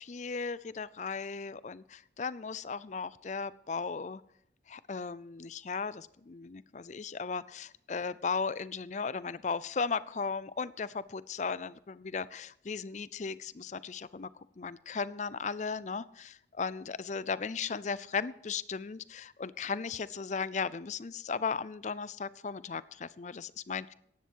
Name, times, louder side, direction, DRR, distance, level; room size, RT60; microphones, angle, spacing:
voice 1, 0.0-4.2 4.7-14.3 14.6-23.9, left 5 dB, 40° left, 18 dB, 0.5 m, -36 dB
15.0 x 10.5 x 4.6 m, 0.71 s
head